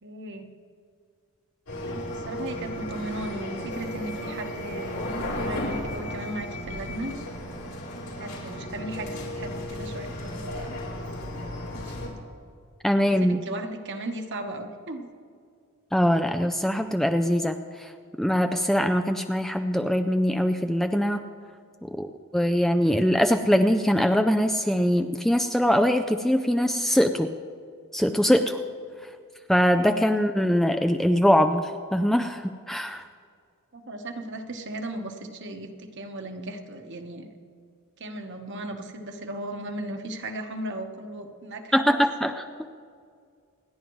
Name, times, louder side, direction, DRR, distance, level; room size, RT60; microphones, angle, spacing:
voice 1, 0.0-0.5 1.9-5.0 5.3-7.2 8.0-10.8 11.7-12.2 13.1-15.1 33.7-37.3 38.0-42.4, right 1 dB, 55° right, 4 dB, 1.2 m, -36 dB
sound 1, 1.7-12.1, left 1 dB, 80° left, 4.4 m, -34 dB
voice 2, 12.8-13.4 15.9-17.9 18.2-21.2 22.0-27.3 27.9-28.6 29.0-29.1 29.5-33.0 41.7-42.4, equal, ahead, 6 dB, 0.4 m, -22 dB
28.0 x 10.5 x 3.2 m, 2.2 s
head